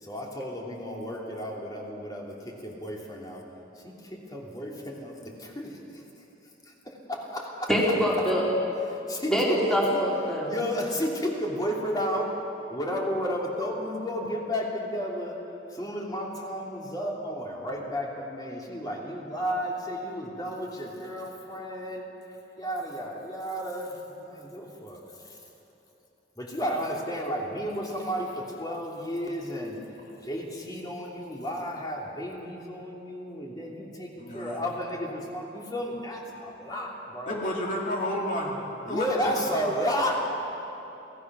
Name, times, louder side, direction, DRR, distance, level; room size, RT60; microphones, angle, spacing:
voice 1, 0.0-3.4 3.8-6.0 6.8-7.7 8.9-9.4 9.7-10.0 10.4-12.4 12.7-15.4 15.7-22.1 22.6-25.4 26.4-29.8 30.2-37.5 38.9-40.3, equal, 20° left, -2 dB, 2.9 m, -32 dB
voice 2, 7.7-8.5 9.3-10.6, equal, 5° left, -5 dB, 3.7 m, -24 dB
voice 3, 34.2-34.6 36.5-36.6 37.3-38.6 38.9-39.3, left 1 dB, 50° left, -2 dB, 2.6 m, -31 dB
25.5 x 16.5 x 6.2 m, 3.0 s
head